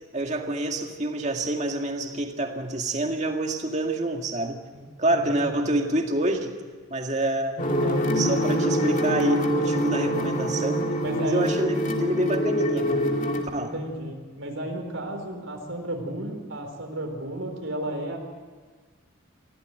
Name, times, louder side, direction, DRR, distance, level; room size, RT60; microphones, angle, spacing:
voice 1, 0.1-4.6 5.0-6.6 6.9-10.8 11.2-13.1 13.5-13.7, right 1 dB, 35° right, 3 dB, 2.0 m, -27 dB
voice 2, 5.1-5.7 11.0-11.5 13.6-18.2, right 1 dB, 70° right, 4 dB, 4.4 m, -33 dB
sound 1, 7.6-13.4, equal, 40° left, 2.7 m, -25 dB
22.5 x 16.5 x 9.1 m, 1.4 s
head